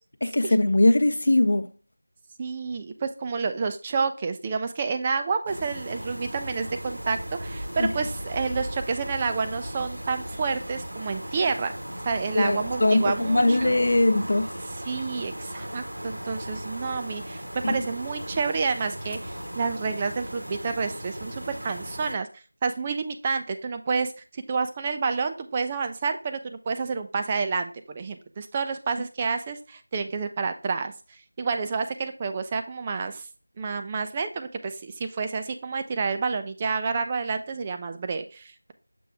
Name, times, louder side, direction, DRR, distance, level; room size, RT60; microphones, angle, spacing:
voice 1, 0.2-1.7 7.8-7.9 12.3-14.5 17.6-17.7, left 1 dB, 50° left, 0.6 m, -21 dB
voice 2, 2.4-11.7 12.0-13.8 14.9-30.9 31.4-33.3 33.6-38.7, right 4 dB, 15° right, 0.4 m, -29 dB
sound 1, 5.5-22.2, equal, 80° right, 1.8 m, -37 dB
6.9 x 3.3 x 4.7 m
figure-of-eight pair, 175°, 0 cm